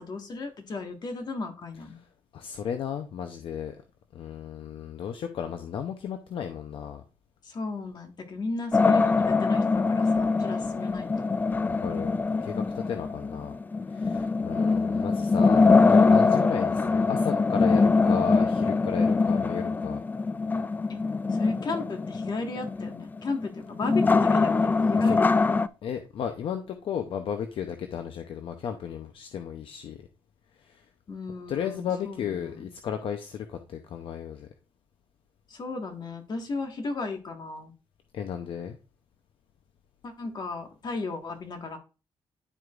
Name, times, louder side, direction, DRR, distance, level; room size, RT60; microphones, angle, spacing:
voice 1, 0.0-2.0 7.4-11.3 20.9-21.0 21.3-25.3 31.1-32.6 35.5-37.7 40.0-41.8, left 3 dB, 45° left, 4 dB, 1.6 m, -35 dB
voice 2, 2.3-3.8 4.1-7.0 11.8-12.1 12.4-13.6 13.9-20.0 25.0-25.2 25.8-30.0 30.6-30.9 31.5-34.5 38.1-38.8, left 8 dB, 70° left, 6 dB, 0.7 m, -34 dB
sound 1, 8.7-25.7, left 4 dB, 20° left, 0.3 m, -23 dB
11.0 x 4.7 x 2.4 m, 0.33 s
cardioid pair, 100°, 10 cm